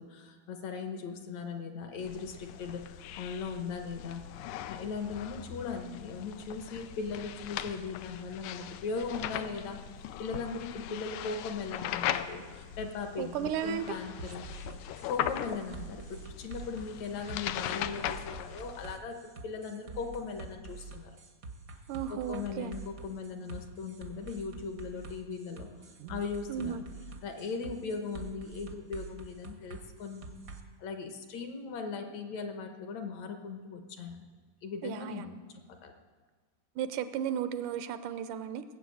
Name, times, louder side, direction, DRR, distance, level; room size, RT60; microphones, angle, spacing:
voice 1, 0.0-4.2 4.7-9.8 10.2-14.4 15.1-21.1 22.1-25.7 26.1-26.8 27.2-30.3 30.8-34.3 34.6-35.4 35.8-35.9, left 5 dB, 65° left, 6 dB, 2.3 m, -38 dB
sound 1, 2.0-19.0, left 11 dB, 85° left, 2.0 m, -39 dB
voice 2, 13.2-14.0 21.9-22.8 26.0-26.2 26.5-26.8 34.8-35.2 36.8-38.6, right 9 dB, 85° right, 11 dB, 2.2 m, -34 dB
sound 2, 14.2-30.6, right 4 dB, 70° right, 0.8 m, -46 dB
19.0 x 7.9 x 7.8 m, 1.5 s
omnidirectional pair, 3.6 m